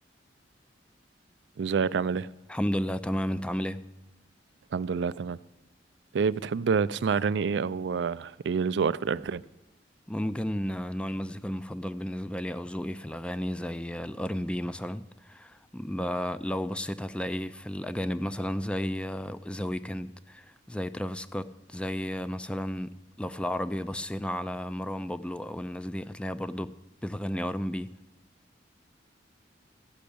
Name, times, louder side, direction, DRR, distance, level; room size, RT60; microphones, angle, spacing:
voice 1, 1.6-2.3 4.7-5.4 6.1-9.4, right 5 dB, 65° right, 0.4 m, -27 dB
voice 2, 2.5-3.8 10.1-26.7 27.0-27.9, equal, 5° left, 0.4 m, -33 dB
14.5 x 6.2 x 8.5 m
head